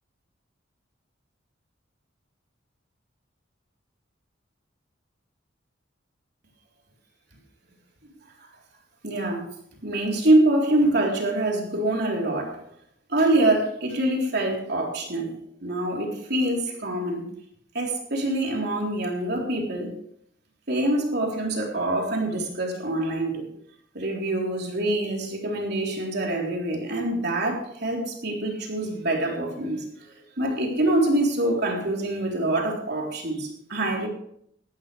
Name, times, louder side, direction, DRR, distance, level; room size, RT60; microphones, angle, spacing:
voice 1, 9.0-9.4 9.8-12.6 13.1-15.3 15.6-17.2 17.7-19.9 20.7-23.5 23.9-29.8 30.4-34.1, right 1 dB, 55° right, 0 dB, 3.7 m, -25 dB
17.0 x 13.0 x 3.4 m, 0.68 s
head